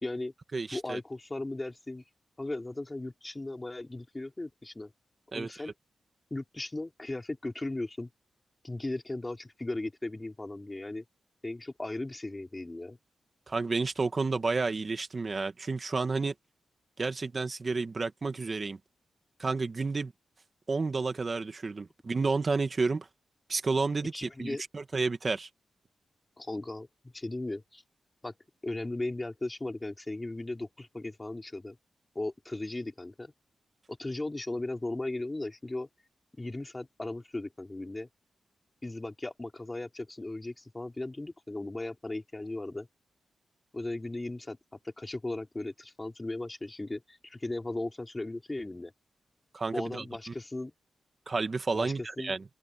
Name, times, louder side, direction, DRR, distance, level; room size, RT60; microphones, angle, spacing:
voice 1, 0.0-0.3 0.7-2.0 2.4-4.9 5.3-5.7 6.3-8.1 8.6-11.0 11.4-13.0 24.1-24.6 26.4-27.8 28.2-28.3 28.6-31.8 32.1-33.3 33.9-35.9 36.4-38.1 38.8-42.9 43.7-44.6 44.8-48.9 49.7-50.7 51.7-52.4, left 2 dB, 15° left, 4.6 m, -37 dB
voice 2, 0.5-1.0 5.3-5.5 13.5-16.3 17.0-18.8 19.4-20.1 20.7-23.1 23.5-25.5 49.5-50.0 51.3-52.4, right 4 dB, 35° right, 1.9 m, -31 dB
wide cardioid pair, 120°, 0 cm